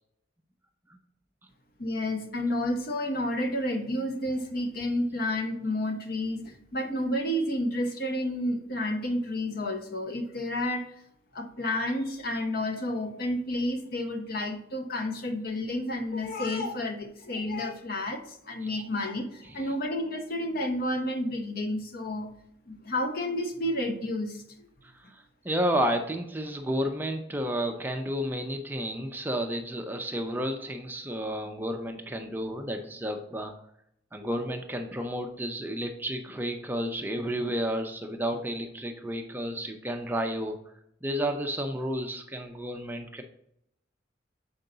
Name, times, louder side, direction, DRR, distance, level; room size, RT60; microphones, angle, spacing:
voice 1, 1.8-10.9 11.3-22.3 22.7-24.7, left 1 dB, 50° left, 6 dB, 0.8 m, -30 dB
voice 2, 19.4-19.7 24.8-33.5 34.1-40.6 41.0-43.2, equal, 10° right, 4 dB, 0.5 m, -31 dB
6.6 x 4.6 x 3.9 m, 0.75 s
head